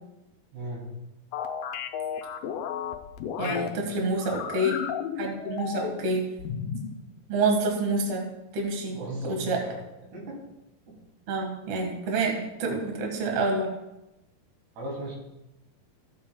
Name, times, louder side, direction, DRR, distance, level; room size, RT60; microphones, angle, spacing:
voice 1, 0.5-0.8 3.4-3.8 8.9-9.8 10.1-10.4 10.8-10.9 14.8-15.1, right 1 dB, 85° right, -3 dB, 4.9 m, -36 dB
sound 1, 1.3-3.7 4.2-6.1 6.4-6.9, left 8 dB, 75° left, 2.2 m, -33 dB
voice 2, 3.4-3.7 3.9-4.8 5.2-6.2 7.3-8.2 8.5-9.0 9.3-9.6 11.3-13.7, right 2 dB, 50° right, 1 dB, 2.1 m, -27 dB
15.5 x 8.7 x 2.3 m, 0.94 s
omnidirectional pair, 4.6 m